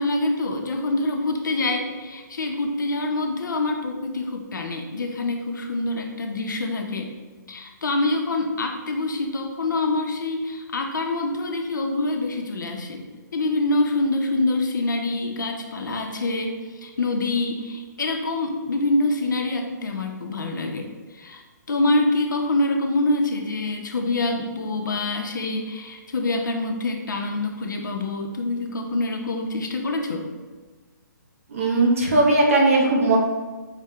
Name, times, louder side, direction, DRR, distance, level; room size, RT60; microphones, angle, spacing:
voice 1, 0.0-7.1 7.5-13.0 13.3-21.4 21.7-30.3, left 2 dB, 70° left, 3 dB, 0.6 m, -25 dB
voice 2, 31.5-33.2, right 2 dB, 45° right, -1 dB, 0.8 m, -18 dB
5.4 x 2.2 x 3.6 m, 1.3 s
hypercardioid pair, 180°, 11 cm